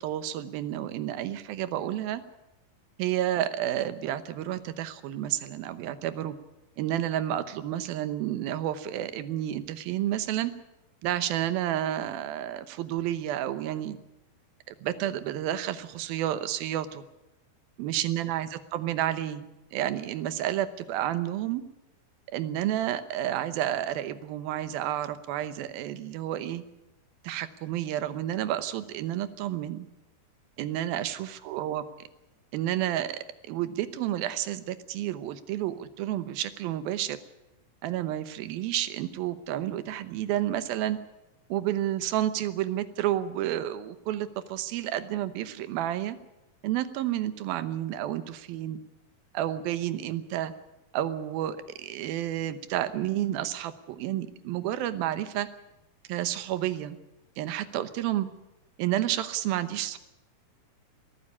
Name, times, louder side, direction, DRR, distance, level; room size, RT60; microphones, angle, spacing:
voice 1, 0.0-2.2 3.0-6.3 6.8-10.5 11.0-14.0 14.7-17.0 17.8-19.5 19.7-21.6 22.3-26.6 27.2-29.9 30.6-31.8 32.5-37.2 37.8-41.0 41.5-46.2 46.6-48.8 49.3-50.5 50.9-55.5 56.1-57.0 57.4-58.3 58.8-60.0, right 12 dB, 80° right, 13 dB, 2.8 m, -30 dB
19.5 x 14.0 x 9.8 m, 0.94 s
omnidirectional pair, 4.3 m